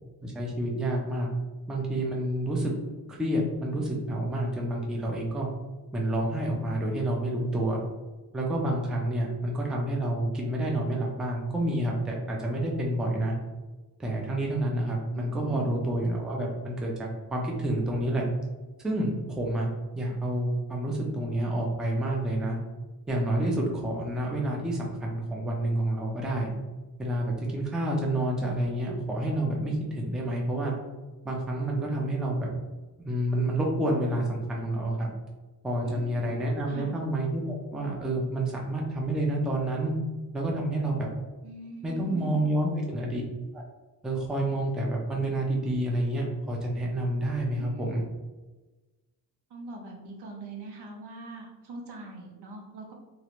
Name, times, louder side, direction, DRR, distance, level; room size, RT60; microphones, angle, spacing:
voice 1, 0.2-1.3 1.7-2.7 3.1-5.5 5.9-7.8 8.3-13.3 14.0-18.3 18.8-22.6 23.1-26.5 27.0-30.7 31.2-32.5 33.0-35.1 35.6-39.9 40.3-41.1 41.8-43.2 43.5-43.6 44.0-48.0, right 1 dB, ahead, -1 dB, 0.3 m, -29 dB
voice 2, 15.1-15.8 35.8-37.0 41.4-42.5 47.5-48.1 49.5-52.9, right 2 dB, 85° right, 0 dB, 0.8 m, -43 dB
3.0 x 2.4 x 2.9 m, 1.2 s
wide cardioid pair, 160°, 40 cm